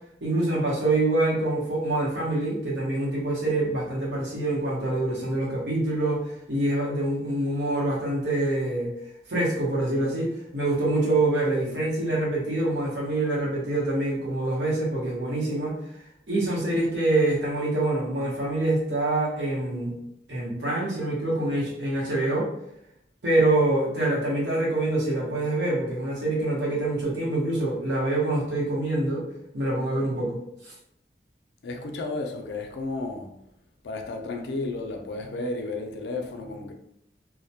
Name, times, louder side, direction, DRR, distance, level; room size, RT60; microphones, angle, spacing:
voice 1, 0.2-8.9 9.3-15.8 16.3-19.9 20.3-22.5 23.2-29.3 29.5-30.4 30.6-30.7, right 2 dB, 90° right, 0.8 m, -25 dB
voice 2, 31.6-33.3 33.8-36.7, left 2 dB, 75° left, 0.4 m, -32 dB
2.1 x 2.1 x 2.7 m
head